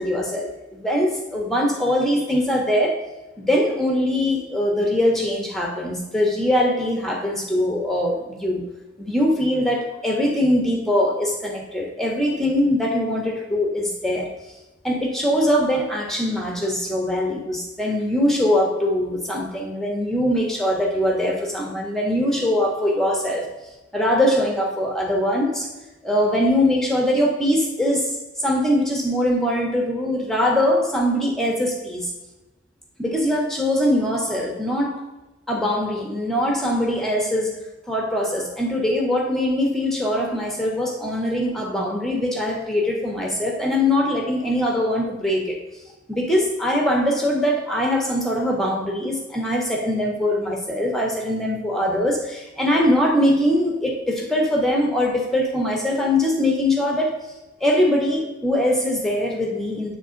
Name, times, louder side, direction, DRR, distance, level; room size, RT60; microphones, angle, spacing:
voice 1, 0.0-8.6 9.0-14.3 14.8-23.5 23.9-25.7 26.0-32.1 33.0-35.0 35.5-37.6 37.9-45.6 46.1-57.1 57.6-60.0, left 1 dB, ahead, 0 dB, 1.2 m, -22 dB
8.3 x 3.6 x 3.9 m, 1.1 s
head